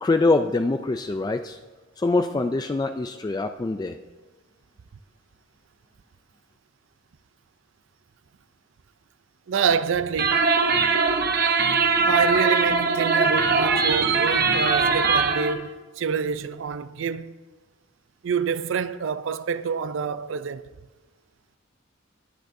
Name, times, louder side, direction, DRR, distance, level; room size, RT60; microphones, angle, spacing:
voice 1, 0.0-1.6 2.0-4.0, left 3 dB, 20° left, 0.3 m, -24 dB
voice 2, 9.5-10.5 12.1-17.3 18.2-20.6, right 6 dB, 70° right, 0.4 m, -27 dB
sound 1, 10.2-15.5, right 4 dB, 50° right, 0.9 m, -21 dB
20.5 x 8.8 x 2.6 m
head